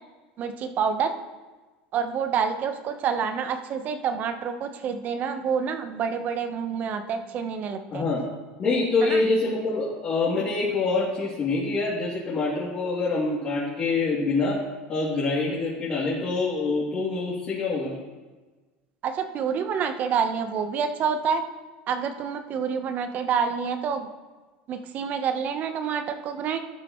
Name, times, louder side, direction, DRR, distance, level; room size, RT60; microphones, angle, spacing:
voice 1, 0.4-1.1 1.9-8.0 9.0-9.2 19.0-21.4 21.9-24.1 24.7-26.6, right 6 dB, 45° right, 8 dB, 1.0 m, -27 dB
voice 2, 7.9-8.2 8.6-14.6 14.9-17.9, left 3 dB, 40° left, -7 dB, 2.9 m, -25 dB
12.5 x 9.9 x 3.1 m, 1.3 s
supercardioid pair, 110°, 4 cm